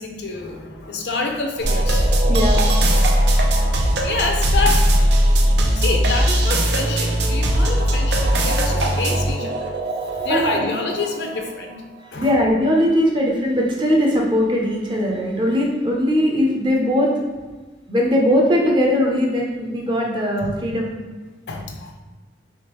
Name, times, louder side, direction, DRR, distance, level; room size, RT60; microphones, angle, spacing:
voice 1, 0.0-2.2 4.0-5.1 5.7-9.8 10.0-11.8 12.1-12.3 20.4-20.6 21.5-21.9, left 3 dB, 75° left, 3 dB, 0.5 m, -27 dB
sound 1, 1.6-11.8, right 1 dB, 80° right, 0.5 m, -19 dB
voice 2, 2.3-2.7 10.0-10.7 12.0-17.1 17.9-20.9, equal, 25° right, -1 dB, 0.6 m, -20 dB
3.5 x 3.0 x 3.0 m, 1.3 s
head